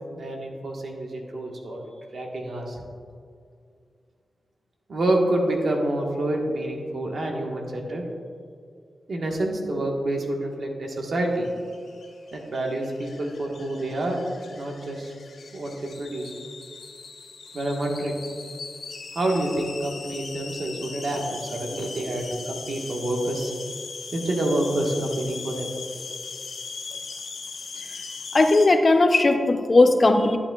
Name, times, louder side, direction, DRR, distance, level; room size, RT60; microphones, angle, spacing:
voice 1, 0.1-1.8 2.1-2.8 4.9-8.0 9.1-11.5 12.3-14.2 14.5-15.1 15.5-16.3 17.5-18.2 19.1-23.5 24.1-25.7, right 1 dB, 65° right, 0 dB, 1.4 m, -27 dB
sound 1, 11.3-28.7, left 4 dB, 80° left, 1.0 m, -39 dB
voice 2, 28.3-30.4, left 2 dB, 40° left, 6 dB, 0.6 m, -17 dB
11.5 x 8.7 x 2.4 m, 2.3 s
wide cardioid pair, 85°, 0 cm